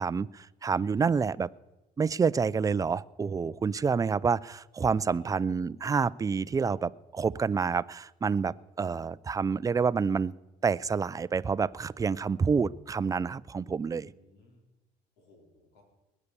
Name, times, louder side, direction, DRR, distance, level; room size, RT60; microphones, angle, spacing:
voice 1, 0.0-1.5 2.0-10.3 10.6-14.1, right 5 dB, 20° right, 18 dB, 0.4 m, -28 dB
voice 2, 5.1-5.4 13.8-14.7 15.2-15.8, left 2 dB, 90° left, 1 dB, 4.6 m, -59 dB
20.0 x 8.4 x 6.8 m, 1.0 s
cardioid pair, 110°, 17 cm